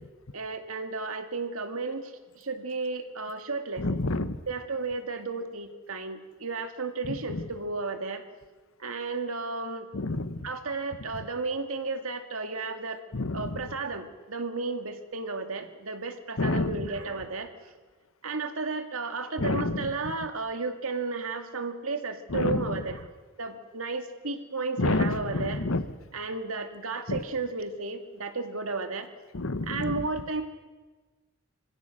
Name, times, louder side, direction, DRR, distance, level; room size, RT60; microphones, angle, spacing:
voice 1, 0.3-2.1 2.4-3.8 4.5-8.2 8.8-9.9 10.4-13.0 13.3-17.5 18.2-23.1 23.4-25.7 26.1-29.1 29.7-30.4, right 3 dB, 75° right, 7 dB, 2.1 m, -33 dB
voice 2, 3.8-4.4 7.3-7.4 9.9-10.4 13.1-13.5 16.4-16.8 19.4-19.9 22.3-22.6 24.8-25.8 27.1-27.2 29.3-29.9, left 2 dB, 70° left, 12 dB, 1.1 m, -28 dB
25.5 x 16.5 x 6.5 m, 1.3 s
head